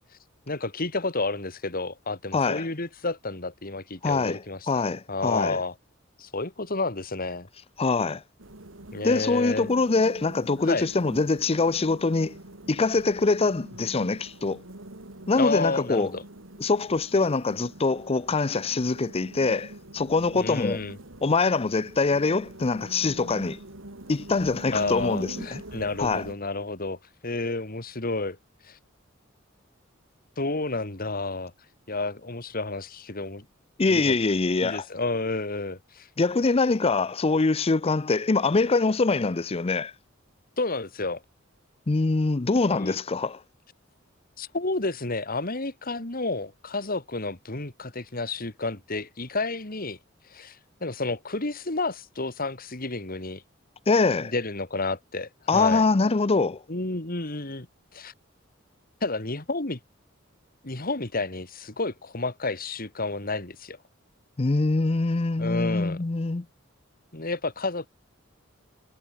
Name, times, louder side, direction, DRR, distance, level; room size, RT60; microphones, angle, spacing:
voice 1, 0.5-4.8 5.1-5.7 6.2-7.5 8.9-9.7 10.6-10.9 15.4-16.2 20.4-21.0 24.7-28.4 28.6-28.8 30.4-31.5 31.9-33.5 33.9-34.1 34.6-36.1 40.6-41.2 42.7-43.0 44.4-50.0 50.3-53.4 54.2-55.8 56.7-57.7 57.9-58.1 59.0-59.8 60.6-63.8 65.4-66.0 67.1-67.9, left 3 dB, 45° left, 2.7 m, -30 dB
voice 2, 2.3-2.7 4.0-5.6 7.8-8.2 9.0-12.4 12.7-14.6 15.3-16.1 16.6-20.8 21.2-23.6 24.1-25.6 26.0-26.2 33.8-34.8 36.2-39.9 41.9-43.4 53.9-54.3 55.5-56.6 64.4-66.5, left 3 dB, 30° left, 0.6 m, -24 dB
sound 1, 8.4-26.4, right 1 dB, 70° right, 3.2 m, -44 dB
head